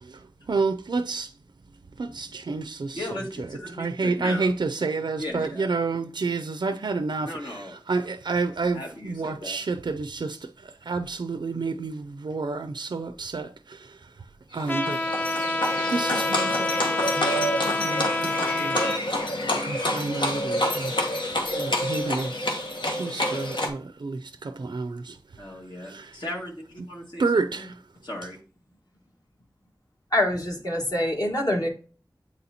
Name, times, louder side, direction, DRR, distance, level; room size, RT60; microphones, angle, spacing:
voice 1, 0.0-1.3 2.0-3.1 3.8-15.4 15.9-16.7 17.1-17.6 17.8-19.2 19.6-20.9 21.3-22.5 22.9-26.2 27.2-27.8, right 4 dB, 75° right, 0.4 m, -30 dB
voice 2, 2.9-4.5 5.2-5.7 7.2-7.7 8.7-9.6 25.4-27.7 28.0-28.4, left 1 dB, 70° left, 1.8 m, -37 dB
Livestock farm animals working animals, 14.6-23.7, left 1 dB, 90° left, 1.0 m, -28 dB
Trumpet, 14.7-19.0, left 2 dB, 25° left, 0.5 m, -27 dB
voice 3, 30.1-31.7, left 1 dB, 50° left, 1.5 m, -25 dB
8.2 x 4.1 x 2.8 m
wide cardioid pair, 40°, 8 cm